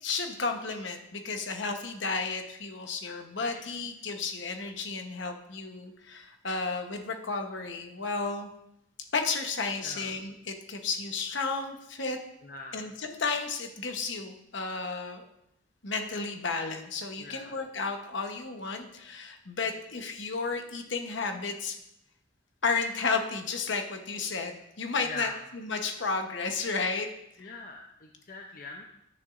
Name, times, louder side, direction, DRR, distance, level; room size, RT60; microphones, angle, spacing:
voice 1, 0.0-8.5 9.1-12.2 12.7-15.2 15.8-21.8 22.6-27.1 27.4-27.5, left 4 dB, 65° left, 5 dB, 1.0 m, -33 dB
voice 2, 9.8-10.1 12.4-12.9 17.2-17.6 25.0-25.4 27.4-28.8, left 3 dB, 45° left, 1 dB, 0.6 m, -43 dB
11.0 x 6.9 x 2.6 m, 0.80 s
head